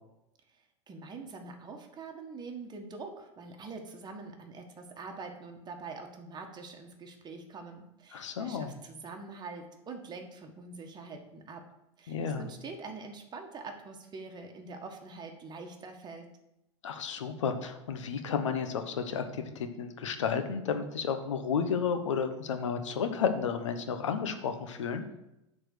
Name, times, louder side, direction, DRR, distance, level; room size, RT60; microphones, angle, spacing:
voice 1, 0.9-11.6 12.0-16.3, right 4 dB, 30° right, 3 dB, 1.7 m, -44 dB
voice 2, 8.1-8.8 12.1-12.5 16.8-25.0, left 6 dB, 80° left, 7 dB, 1.1 m, -32 dB
8.9 x 4.4 x 6.8 m, 0.90 s
hypercardioid pair, 95°, 15 cm